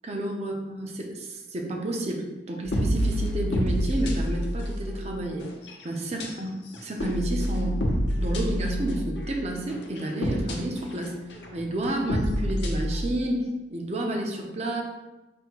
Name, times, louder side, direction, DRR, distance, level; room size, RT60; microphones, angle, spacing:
voice 1, 0.0-5.5 5.8-6.5 6.8-7.9 8.2-11.2 11.5-14.8, right 1 dB, 35° right, 1 dB, 0.6 m, -30 dB
sound 1, 2.7-5.0 5.4-5.8 6.2-6.3 6.7-9.3 9.7-13.0, equal, 65° left, 0.8 m, -28 dB
5.2 x 2.2 x 4.5 m, 1.1 s
head